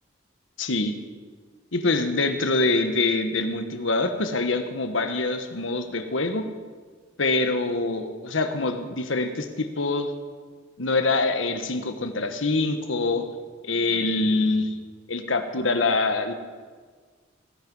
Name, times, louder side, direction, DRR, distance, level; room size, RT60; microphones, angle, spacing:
voice 1, 0.6-1.0 1.7-6.4 7.2-10.1 10.8-13.2 13.6-14.7 15.1-16.3, left 3 dB, 85° left, 7 dB, 1.4 m, -25 dB
19.0 x 11.0 x 5.6 m, 1.5 s
head